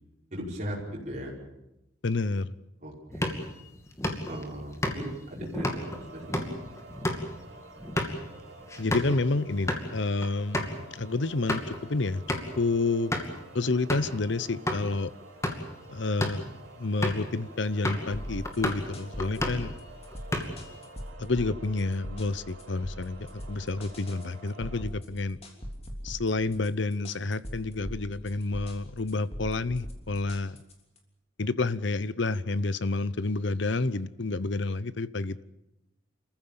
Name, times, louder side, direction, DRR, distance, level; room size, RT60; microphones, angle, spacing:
voice 1, 0.3-1.3 2.8-3.4 4.3-6.5, equal, 35° right, 5.5 m, -38 dB
voice 2, 2.0-2.5 8.8-12.2 12.6-13.1 13.5-15.1 15.9-19.7 21.2-25.4 26.0-30.6 31.4-35.4, left 3 dB, 60° left, 0.8 m, -29 dB
sound 1, 3.1-9.2 9.5-9.9 10.2-10.3 10.5-10.7 11.2-11.8 12.3-12.6 13.1-13.4 13.9-14.2 14.7-14.8 15.3-15.7 16.1-16.5 17.0-17.3 17.8-18.1 18.4-18.9 19.2-19.7 20.1-20.7, left 1 dB, 15° left, 2.4 m, -32 dB
sound 2, 5.6-24.8, right 2 dB, 75° right, 4.7 m, -50 dB
sound 3, 18.1-31.0, equal, 30° left, 3.3 m, -41 dB
27.5 x 15.0 x 8.8 m
head